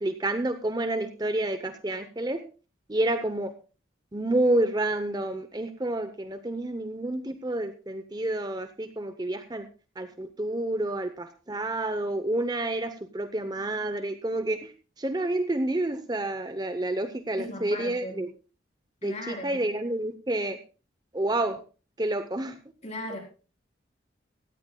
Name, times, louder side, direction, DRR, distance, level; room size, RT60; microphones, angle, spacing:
voice 1, 0.0-2.4 2.9-3.5 4.1-9.7 10.0-14.7 15.0-18.3 19.0-20.6 21.1-21.6 22.0-22.6, right 1 dB, 20° right, 9 dB, 0.7 m, -29 dB
voice 2, 17.4-18.2 19.0-19.6 22.8-23.2, left 1 dB, 35° left, 1 dB, 3.9 m, -37 dB
18.0 x 13.5 x 2.3 m, 0.34 s
head